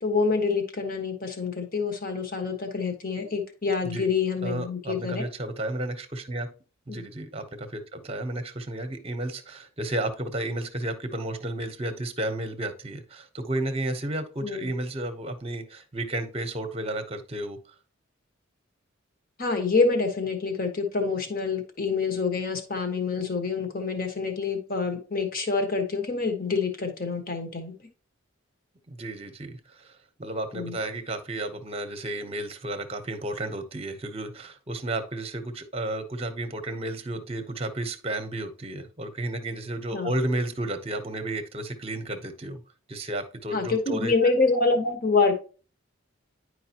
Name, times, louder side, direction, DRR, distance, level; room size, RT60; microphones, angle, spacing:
voice 1, 0.0-5.3 6.9-7.0 14.4-14.7 19.4-27.7 30.5-30.8 39.9-40.2 43.5-45.4, left 4 dB, 45° left, 5 dB, 1.3 m, -26 dB
voice 2, 4.4-6.5 6.9-17.6 28.9-29.9 30.2-42.6 42.9-44.1, right 1 dB, 30° right, 8 dB, 0.9 m, -32 dB
10.0 x 4.8 x 2.9 m, 0.36 s
head